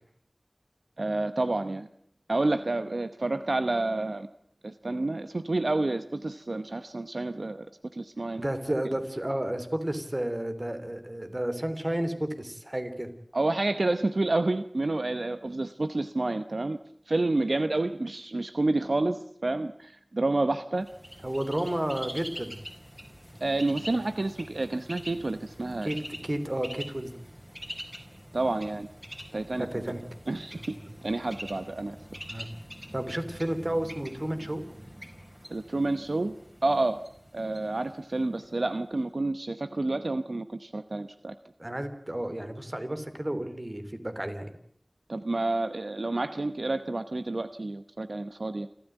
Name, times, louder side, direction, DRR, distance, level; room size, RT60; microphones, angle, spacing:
voice 1, 1.0-1.9 2.3-4.3 4.6-7.7 7.9-8.4 13.3-16.8 17.1-20.9 23.4-25.9 28.3-28.9 29.3-29.7 30.3-30.6 31.0-32.2 35.5-36.3 36.6-37.0 37.3-41.3 45.1-48.7, right 2 dB, 75° right, 10 dB, 0.9 m, -29 dB
voice 2, 8.4-13.1 21.2-22.5 25.8-27.2 29.6-30.0 30.5-30.9 32.3-32.5 32.9-34.6 41.6-44.5, right 1 dB, 35° right, 9 dB, 3.3 m, -32 dB
Bird, 20.8-38.6, equal, 10° right, 4.9 m, -45 dB
27.5 x 13.5 x 9.2 m, 0.67 s
wide cardioid pair, 45°, 0 cm